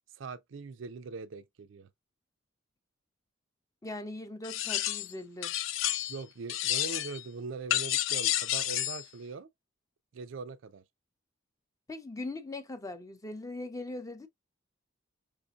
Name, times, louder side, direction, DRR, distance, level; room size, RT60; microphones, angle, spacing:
voice 1, 0.1-1.9 6.1-9.5 10.1-10.8, right 4 dB, 75° right, 0.4 m, -41 dB
voice 2, 3.8-5.5 11.9-14.3, left 2 dB, 15° left, 0.6 m, -40 dB
sound 1, 4.4-5.1 5.4-6.2 6.5-7.2 7.7-9.0, left 13 dB, 90° left, 0.4 m, -30 dB
5.0 x 2.6 x 2.4 m
head